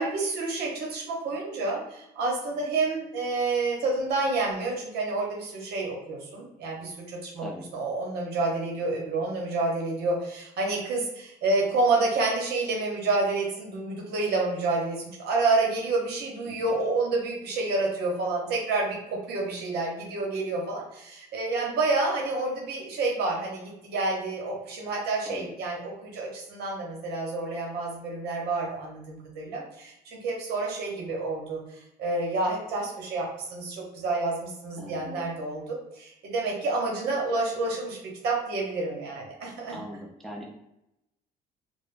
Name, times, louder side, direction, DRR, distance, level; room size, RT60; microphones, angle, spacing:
voice 1, 0.0-7.5 7.7-31.6 32.0-38.0 38.2-39.8, right 3 dB, 75° right, -1 dB, 0.8 m, -29 dB
voice 2, 7.4-7.7 16.5-16.8 25.2-25.5 34.8-35.3 39.7-40.5, equal, ahead, -3 dB, 0.4 m, -40 dB
3.3 x 2.0 x 2.4 m, 0.84 s
cardioid pair, 110°, 17 cm